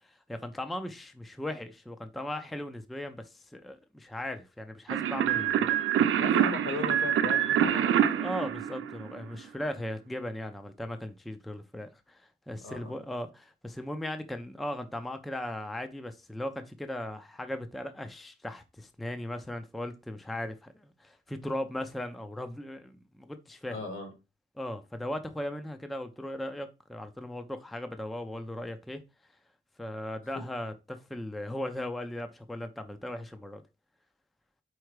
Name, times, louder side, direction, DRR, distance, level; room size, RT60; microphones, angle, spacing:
voice 1, 0.0-5.8 7.8-23.8 24.6-29.0 29.8-33.6, left 1 dB, ahead, 0.4 m, -38 dB
sound 1, 4.9-9.3, right 9 dB, 90° right, 0.7 m, -26 dB
voice 2, 6.2-8.1 12.6-13.0 23.7-24.1, left 3 dB, 80° left, 2.1 m, -37 dB
4.6 x 4.3 x 4.7 m
wide cardioid pair, 175°, 20 cm